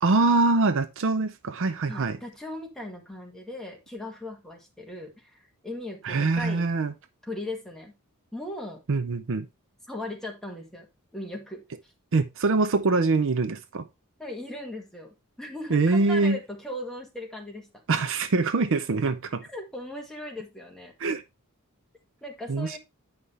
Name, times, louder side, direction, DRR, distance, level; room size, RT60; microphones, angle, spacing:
voice 1, 0.0-2.2 6.0-6.9 8.9-9.5 12.1-13.8 15.7-16.4 17.9-19.4 21.0-21.2 22.5-22.8, right 3 dB, 60° right, 0.6 m, -24 dB
voice 2, 1.9-6.7 7.2-8.0 8.3-8.8 9.9-11.6 14.2-17.7 19.5-20.9 22.2-22.8, left 1 dB, ahead, 1.9 m, -38 dB
9.6 x 5.6 x 3.3 m
head